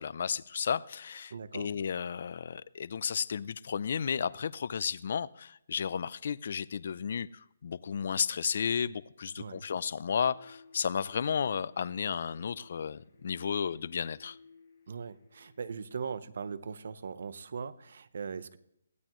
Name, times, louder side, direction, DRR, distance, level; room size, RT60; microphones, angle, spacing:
voice 1, 0.0-14.4, left 7 dB, 45° left, 0.4 m, -33 dB
voice 2, 1.3-1.7 9.4-9.6 14.9-18.6, right 6 dB, 55° right, 0.9 m, -40 dB
sound 1, 10.2-15.9, left 3 dB, 20° left, 5.3 m, -59 dB
22.0 x 15.5 x 3.1 m
hypercardioid pair, 170°, 0 cm